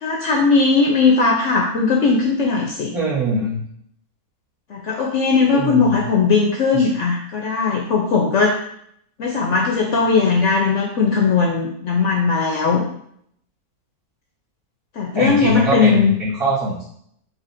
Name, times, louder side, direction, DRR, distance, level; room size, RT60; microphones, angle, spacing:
voice 1, 0.0-2.9 4.7-8.5 9.2-12.9 15.0-16.2, left 4 dB, 65° left, -2 dB, 0.7 m, -18 dB
voice 2, 2.9-3.6 5.5-6.0 6.7-6.9 15.1-16.8, right 1 dB, 75° right, -14 dB, 2.2 m, -22 dB
4.8 x 2.7 x 2.5 m, 0.68 s
omnidirectional pair, 1.6 m